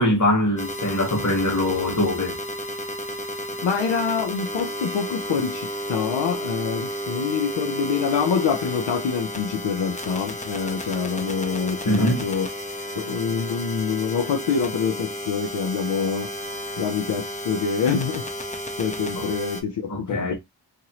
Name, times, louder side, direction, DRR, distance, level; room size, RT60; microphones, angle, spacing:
voice 1, 0.0-2.3 11.9-12.2 19.2-19.3 19.9-20.3, left 1 dB, 40° left, 1.3 m, -22 dB
sound 1, 0.6-19.6, equal, 15° left, 0.5 m, -32 dB
voice 2, 3.6-12.5 13.0-16.3 16.8-18.3 18.8-20.3, left 6 dB, 75° left, 0.5 m, -26 dB
2.8 x 2.6 x 2.9 m
wide cardioid pair, 60°, 43 cm